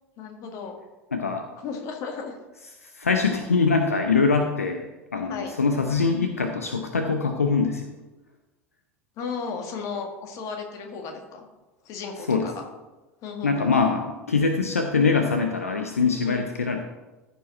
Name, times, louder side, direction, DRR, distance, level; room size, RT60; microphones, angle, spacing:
voice 1, 0.2-0.7 1.5-2.4 5.3-5.5 9.2-11.4 11.8-12.7 13.2-13.7 16.2-16.4, left 5 dB, 45° left, 3 dB, 1.9 m, -35 dB
voice 2, 1.1-1.4 2.8-4.9 5.1-7.9 12.3-12.5 13.4-16.8, left 4 dB, 80° left, 5 dB, 0.7 m, -23 dB
14.5 x 5.3 x 4.4 m, 1.1 s
figure-of-eight pair, 75°, 8 cm